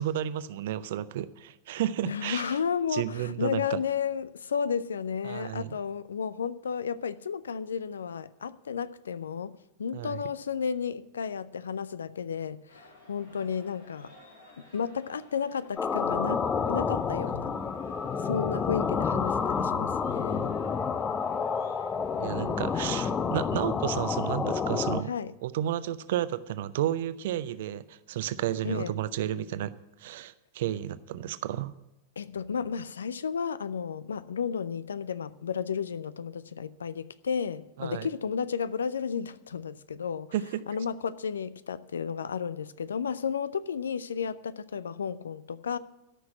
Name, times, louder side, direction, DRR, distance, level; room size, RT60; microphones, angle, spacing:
voice 1, 0.0-2.5 2.9-3.8 5.2-5.7 9.9-10.2 22.2-25.1 25.4-29.7 30.0-31.7 37.8-38.1 40.3-40.6, right 12 dB, 55° right, 0.6 m, -32 dB
voice 2, 2.0-9.5 9.8-14.1 14.7-17.5 18.2-20.5 25.1-25.3 28.6-28.9 32.2-40.3 40.7-45.8, left 6 dB, 70° left, 0.5 m, -33 dB
sound 1, 12.7-24.3, left 1 dB, 85° left, 6.6 m, -56 dB
sound 2, 15.8-25.0, left 6 dB, 20° left, 0.6 m, -29 dB
13.5 x 6.2 x 9.8 m
figure-of-eight pair, 90°, 0 cm